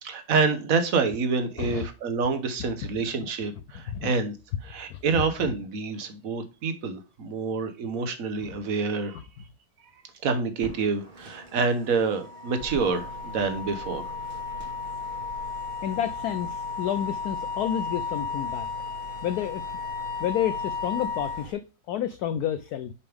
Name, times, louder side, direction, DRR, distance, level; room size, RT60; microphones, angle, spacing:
voice 1, 0.0-4.4 4.6-9.2 10.2-14.1, right 4 dB, 50° right, 1.3 m, -27 dB
sound 1, 10.6-21.5, right 3 dB, 90° right, 3.1 m, -44 dB
Wind instrument woodwind instrument, 12.0-21.5, left 5 dB, 35° left, 1.0 m, -34 dB
voice 2, 15.8-18.7 19.2-19.6 20.2-22.9, left 10 dB, 80° left, 0.8 m, -30 dB
6.9 x 5.3 x 3.4 m
omnidirectional pair, 2.2 m